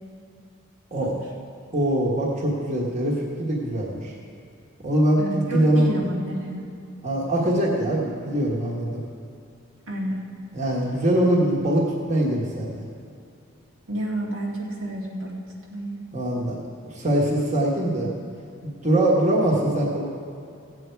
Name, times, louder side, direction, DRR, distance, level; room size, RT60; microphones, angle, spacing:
voice 1, 1.7-4.1 4.8-5.9 7.0-9.0 10.5-12.8 16.1-16.6 16.8-18.1 18.6-20.0, right 1 dB, 35° right, -3 dB, 1.5 m, -23 dB
voice 2, 5.2-6.6 9.9-10.2 13.9-15.4 15.7-16.0, right 1 dB, 90° right, -5 dB, 2.4 m, -30 dB
16.0 x 8.1 x 4.6 m, 2.6 s
head